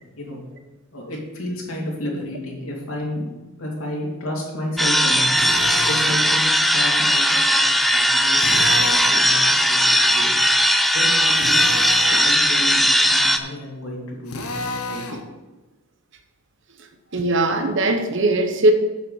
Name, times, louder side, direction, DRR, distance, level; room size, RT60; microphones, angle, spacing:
voice 1, 0.9-3.3 3.6-5.2 5.8-10.4 10.9-11.7 12.1-14.3 14.8-15.0, left 1 dB, 70° left, -2 dB, 2.8 m, -31 dB
sound 1, 4.8-13.4, equal, ahead, 0.4 m, -18 dB
Drill, 5.4-6.2 8.4-9.3 11.3-12.2 14.3-15.2, left 2 dB, 90° left, 1.3 m, -30 dB
voice 2, 17.1-18.7, right 2 dB, 55° right, 6 dB, 1.0 m, -19 dB
7.7 x 6.7 x 6.5 m, 1.1 s
head